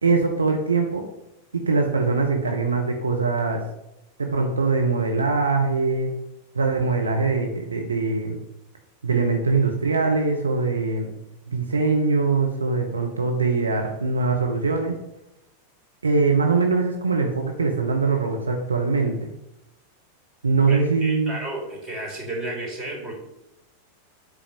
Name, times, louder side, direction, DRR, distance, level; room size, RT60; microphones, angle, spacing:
voice 1, 0.0-1.0 1.5-3.6 4.2-6.1 6.5-8.4 9.0-11.1 11.5-14.9 16.0-19.1 20.4-21.4, right 4 dB, 75° right, 2 dB, 1.2 m, -22 dB
voice 2, 20.7-23.2, right 1 dB, 20° right, -1 dB, 4.1 m, -32 dB
8.5 x 5.6 x 6.9 m, 0.89 s
figure-of-eight pair, 90°, 0 cm